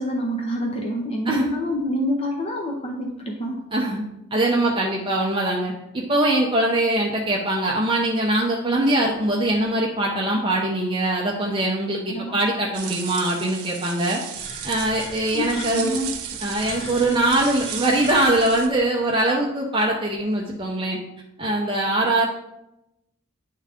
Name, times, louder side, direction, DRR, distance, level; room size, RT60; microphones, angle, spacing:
voice 1, 0.0-3.7 12.1-12.4 15.3-16.1, equal, 25° left, 1 dB, 0.6 m, -27 dB
voice 2, 3.7-4.0 4.3-14.2 14.6-16.0 16.4-21.0 21.4-22.3, right 1 dB, 20° right, -2 dB, 0.6 m, -22 dB
sound 1, 12.7-18.7, right 9 dB, 90° right, 0.7 m, -35 dB
sound 2, 14.3-18.8, left 1 dB, 70° left, 1.6 m, -39 dB
9.4 x 3.7 x 3.4 m, 0.88 s
head